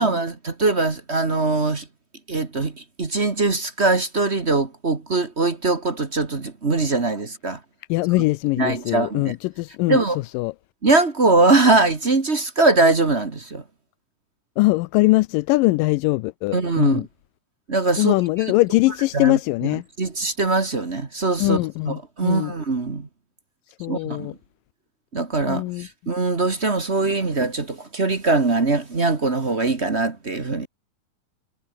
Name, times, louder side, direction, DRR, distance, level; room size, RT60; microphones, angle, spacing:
voice 1, 0.0-1.8 2.3-7.6 8.6-9.3 9.9-10.2 10.8-13.6 16.5-17.1 17.7-18.5 19.1-19.4 20.0-21.6 21.8-23.1 23.9-24.3 25.1-30.7, right 3 dB, 30° right, 1.3 m, -22 dB
voice 2, 7.9-10.0 10.3-10.5 14.6-17.1 18.0-19.8 21.4-22.5 23.8-24.3 25.5-25.9, left 21 dB, 90° left, 2.3 m, -21 dB
omnidirectional pair, 3.8 m